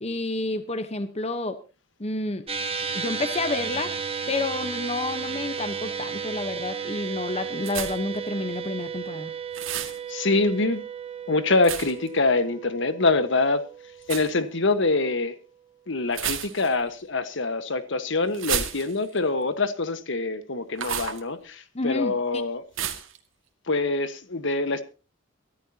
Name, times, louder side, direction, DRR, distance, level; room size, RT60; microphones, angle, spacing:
voice 1, 0.0-1.6 2.0-2.4 2.9-3.9 4.3-9.3 21.7-22.1, left 2 dB, 35° left, 1.1 m, -29 dB
sound 1, 2.5-15.0, right 6 dB, 30° right, 1.4 m, -34 dB
sound 2, 7.7-8.2 9.5-10.0 11.6-12.1 14.0-14.3 16.1-16.8 18.3-19.2 20.8-21.2 22.8-23.2, right 9 dB, 90° right, 2.0 m, -31 dB
voice 2, 10.1-10.8 11.3-13.6 14.1-15.4 15.9-22.6 23.7-24.8, left 3 dB, 70° left, 1.4 m, -25 dB
23.5 x 13.0 x 2.9 m
head